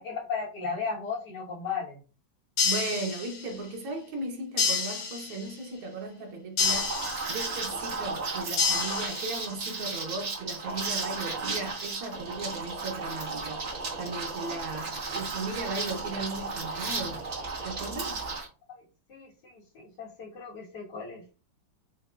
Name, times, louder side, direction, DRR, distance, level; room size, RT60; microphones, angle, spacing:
voice 1, 0.0-2.0 18.7-21.2, left 5 dB, 60° left, 1.9 m, -36 dB
sound 1, 2.6-3.6 4.6-5.6 6.6-7.6 8.6-9.6, left 5 dB, 80° left, 1.7 m, -29 dB
voice 2, 2.6-17.3 17.6-18.2, right 3 dB, 90° right, 1.7 m, -37 dB
Liquid, 6.6-18.5, right 3 dB, 45° right, 1.1 m, -34 dB
6.3 x 2.2 x 2.3 m
omnidirectional pair, 2.2 m